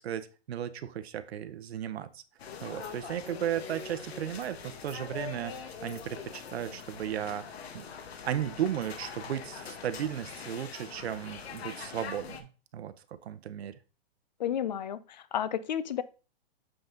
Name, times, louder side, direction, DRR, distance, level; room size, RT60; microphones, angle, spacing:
voice 1, 0.0-2.2 2.6-7.5 7.7-7.9 8.2-12.5 12.7-13.7, right 10 dB, 85° right, 0.8 m, -35 dB
sound 1, 2.4-12.4, left 6 dB, 80° left, 1.2 m, -43 dB
voice 2, 14.4-16.0, left 9 dB, 45° left, 0.5 m, -32 dB
7.8 x 3.9 x 3.8 m
hypercardioid pair, 180°, 31 cm